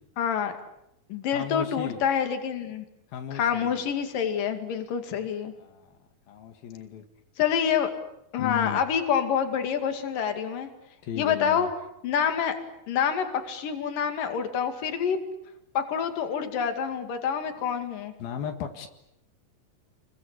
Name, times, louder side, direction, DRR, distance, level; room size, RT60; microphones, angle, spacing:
voice 1, 0.2-0.5 1.1-2.9 3.3-5.5 7.4-7.9 8.3-10.7 11.2-11.7 12.0-12.5 12.9-15.2 15.8-18.1, left 7 dB, 70° left, 7 dB, 3.9 m, -27 dB
voice 2, 1.3-2.0 3.1-3.8 5.6-5.9 6.3-7.0 8.4-8.8 11.0-11.7 18.2-18.9, left 8 dB, 85° left, 5 dB, 3.7 m, -35 dB
30.0 x 22.5 x 8.4 m, 0.81 s
omnidirectional pair, 4.1 m